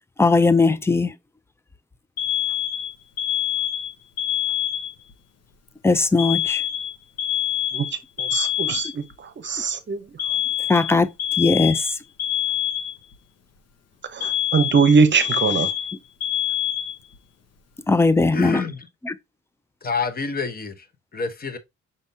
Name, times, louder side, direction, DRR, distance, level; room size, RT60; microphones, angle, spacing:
voice 1, 0.2-1.1 5.8-6.6 10.7-11.1 11.4-12.0 17.9-18.6 19.0-19.1, left 3 dB, 10° left, 0.4 m, -18 dB
Alarm, 2.2-5.1 6.2-9.1 10.2-13.2 14.2-17.2, left 11 dB, 55° left, 0.9 m, -25 dB
voice 2, 8.2-10.0 14.1-15.7, right 5 dB, 40° right, 0.8 m, -21 dB
voice 3, 18.3-18.8 19.8-20.9 21.1-21.6, left 4 dB, 30° left, 0.9 m, -27 dB
5.5 x 3.5 x 2.7 m
cardioid pair, 90°, 30 cm